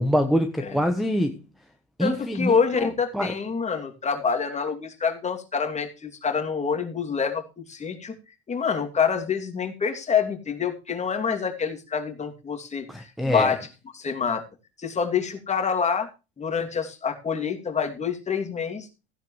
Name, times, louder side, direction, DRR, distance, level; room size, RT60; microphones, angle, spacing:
voice 1, 0.0-1.4 2.0-2.9 3.1-3.3 12.9-13.5, equal, ahead, 1.2 m, -25 dB
voice 2, 2.0-8.1 8.5-13.7 13.9-14.4 14.8-16.1 16.4-18.9, left 6 dB, 20° left, 2.9 m, -27 dB
15.5 x 10.0 x 3.3 m
supercardioid pair, 120°, 33 cm